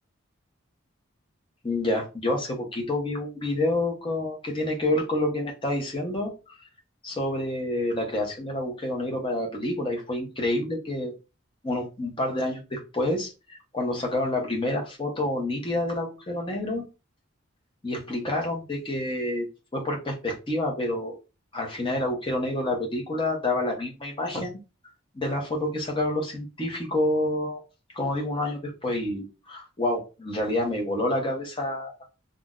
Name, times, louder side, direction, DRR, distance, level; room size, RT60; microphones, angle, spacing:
voice 1, 1.6-6.3 7.0-11.1 11.6-16.8 17.8-19.5 19.7-21.1 21.5-24.6 25.1-27.6 27.9-31.9, left 1 dB, 25° left, 0 dB, 0.8 m, -28 dB
2.6 x 2.1 x 3.6 m, 0.29 s
head